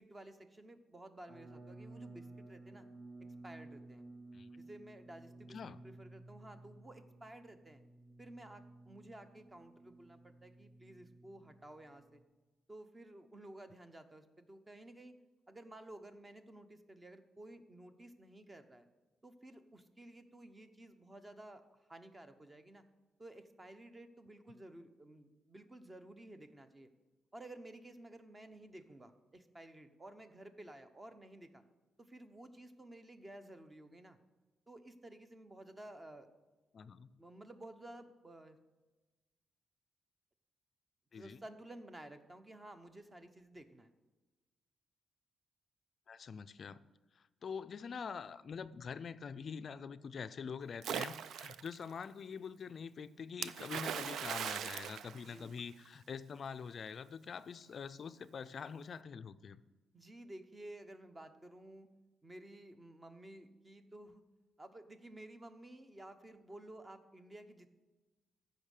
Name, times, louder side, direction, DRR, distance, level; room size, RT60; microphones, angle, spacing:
voice 1, 0.0-2.9 3.4-4.1 4.6-7.8 8.2-12.2 12.7-15.2 15.5-18.9 19.2-22.8 23.2-26.9 27.3-31.6 32.0-34.2 34.7-36.3 36.8-36.9 37.2-38.6 41.1-43.9 55.1-55.6 59.9-61.9 62.2-64.2 64.6-67.7, right 1 dB, 20° right, 8 dB, 0.8 m, -53 dB
sound 1, 1.3-12.2, right 2 dB, 35° right, 1.9 m, -55 dB
voice 2, 4.3-4.7 5.5-5.8 36.7-37.1 41.1-41.4 46.1-46.8 47.2-59.6, left 6 dB, 45° left, 13 dB, 0.4 m, -45 dB
Splash splatter, 50.8-51.8 53.4-55.9, right 8 dB, 75° right, 0.4 m, -40 dB
14.5 x 5.4 x 6.5 m, 1.2 s
cardioid pair, 140°, 0 cm